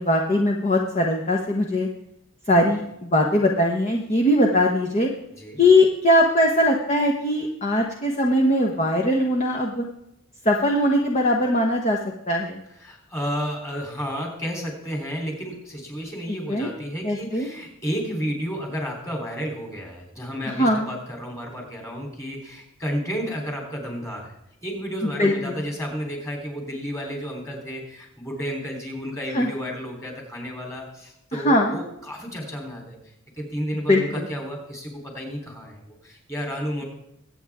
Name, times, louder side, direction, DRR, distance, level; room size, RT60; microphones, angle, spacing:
voice 1, 0.0-1.9 2.5-5.1 5.6-9.8 10.4-12.0 12.3-12.6 16.5-16.7 17.0-17.5 20.5-20.9 25.2-25.6 29.3-29.5 31.3-31.8 33.9-34.2, left 1 dB, 30° left, 1 dB, 1.2 m, -20 dB
voice 2, 5.3-5.6 12.8-24.4 24.6-36.8, equal, 15° left, 0 dB, 3.5 m, -32 dB
22.5 x 9.0 x 3.6 m, 0.83 s
head